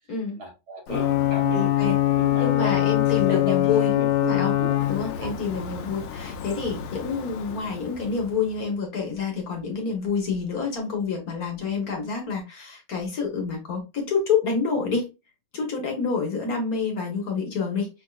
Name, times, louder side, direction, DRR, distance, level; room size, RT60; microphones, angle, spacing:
voice 1, 0.4-2.8 3.1-4.8 5.1-5.3, right 4 dB, 55° right, 1.3 m, -36 dB
Ocean / Boat Water vehicle / Alarm, 0.9-8.4, left 13 dB, 80° left, 1.5 m, -24 dB
voice 2, 1.5-2.0 2.4-3.9 4.3-4.5 4.9-15.1 15.5-17.9, left 5 dB, 50° left, 1.5 m, -27 dB
5.6 x 3.5 x 2.3 m
omnidirectional pair, 2.3 m